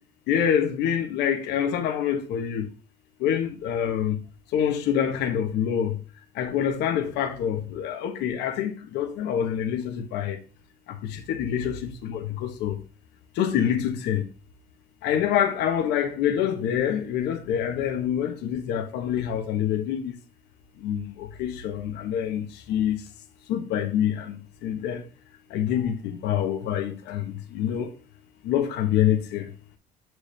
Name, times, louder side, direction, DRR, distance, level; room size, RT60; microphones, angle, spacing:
voice 1, 0.3-2.7 3.2-4.2 4.5-6.0 6.3-10.4 10.9-12.8 13.3-14.3 15.0-20.2 20.8-23.0 23.5-25.0 25.5-27.9 28.4-29.5, left 9 dB, 90° left, 1.2 m, -26 dB
6.7 x 4.8 x 3.3 m
cardioid pair, 110°, 17 cm